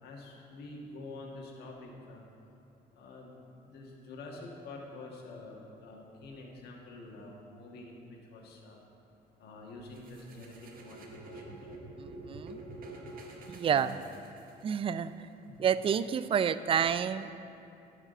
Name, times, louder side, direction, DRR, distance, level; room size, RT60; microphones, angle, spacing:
voice 1, 0.0-2.2 2.9-8.8 9.4-11.8 13.7-13.9 15.5-15.6, left 2 dB, 70° left, -1 dB, 1.6 m, -47 dB
sound 1, 9.9-14.9, right 2 dB, 55° right, 1.3 m, -47 dB
voice 2, 12.0-12.6 13.5-14.0 14.6-15.3 15.6-17.3, right 8 dB, 35° right, 14 dB, 0.3 m, -29 dB
11.0 x 5.0 x 6.5 m, 2.7 s
cardioid pair, 110°, 17 cm